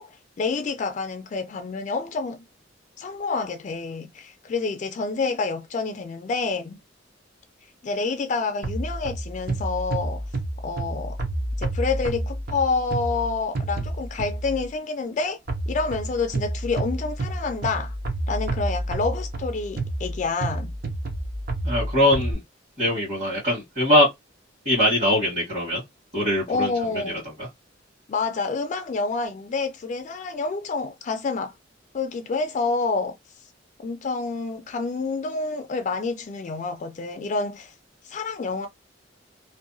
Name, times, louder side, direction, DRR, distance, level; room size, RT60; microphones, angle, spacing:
voice 1, 0.0-2.4 3.0-6.8 7.8-10.2 10.6-11.2 11.6-15.4 15.7-18.0 18.3-20.7 26.5-27.2 28.1-31.5 31.9-33.2 33.8-37.7 38.0-38.7, left 4 dB, 40° left, 0.3 m, -28 dB
sound 1, 8.6-14.7 15.5-22.3, right 1 dB, 50° right, 0.6 m, -29 dB
voice 2, 21.6-22.4 22.8-24.1 24.6-25.8 26.1-26.7, left 1 dB, 35° right, 1.3 m, -21 dB
2.7 x 2.1 x 2.6 m
head